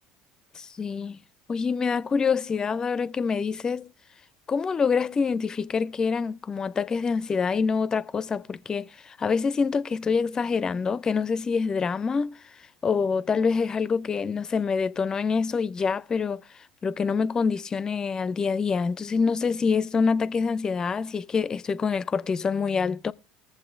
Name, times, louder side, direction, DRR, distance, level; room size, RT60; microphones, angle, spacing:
voice 1, 0.6-1.2 1.5-3.9 4.5-12.4 12.8-16.4 16.8-23.1, left 5 dB, 30° left, 0.4 m, -26 dB
21.5 x 7.3 x 2.5 m
hypercardioid pair, 70°, 2 cm